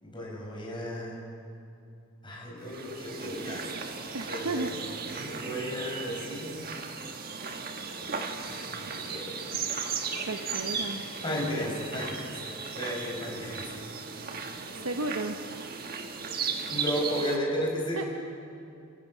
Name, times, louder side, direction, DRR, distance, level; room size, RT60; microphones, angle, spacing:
voice 1, 0.0-1.2 2.2-4.6 5.1-6.7 8.5-9.4 10.7-10.8 11.2-12.4 12.7-13.6 16.6-18.1, equal, 25° left, -2 dB, 5.1 m, -34 dB
sound 1, 2.7-17.4, right 5 dB, 45° right, 1.4 m, -36 dB
voice 2, 4.1-4.7 10.2-11.0 14.7-15.4 18.0-18.1, right 2 dB, 90° right, 4 dB, 1.1 m, -33 dB
29.0 x 15.5 x 6.2 m, 2.6 s
head